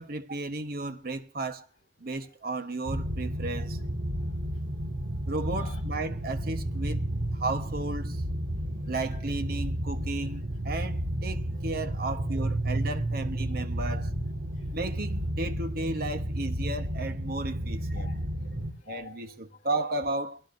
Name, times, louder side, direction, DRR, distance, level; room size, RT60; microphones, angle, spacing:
voice 1, 0.0-1.7 2.0-3.8 5.3-7.0 7.3-8.2 8.9-14.1 14.7-18.1 18.9-20.4, right 2 dB, 55° right, 1.2 m, -34 dB
sound 1, 2.9-18.7, right 1 dB, 75° right, 1.8 m, -32 dB
voice 2, 4.1-4.6 5.0-5.3 5.6-5.8 7.1-7.2 8.7-9.0 11.5-11.6 12.0-12.2 13.6-13.7 14.5-14.8 18.0-19.8, left 4 dB, 45° left, 5.5 m, -52 dB
22.5 x 17.0 x 2.7 m
head